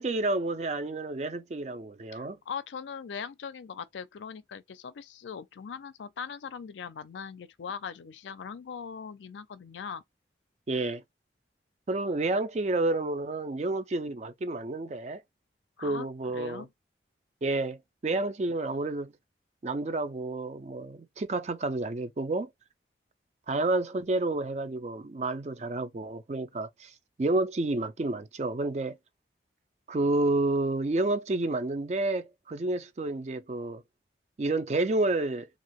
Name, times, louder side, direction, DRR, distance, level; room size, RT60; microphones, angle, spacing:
voice 1, 0.0-2.4 10.7-11.0 11.9-15.2 15.8-16.7 17.4-19.1 19.6-22.5 23.5-29.0 29.9-33.8 34.4-35.5, right 2 dB, 40° right, 0.4 m, -30 dB
voice 2, 2.1-10.0 15.8-16.7, left 6 dB, 85° left, 0.4 m, -40 dB
2.8 x 2.5 x 2.9 m
head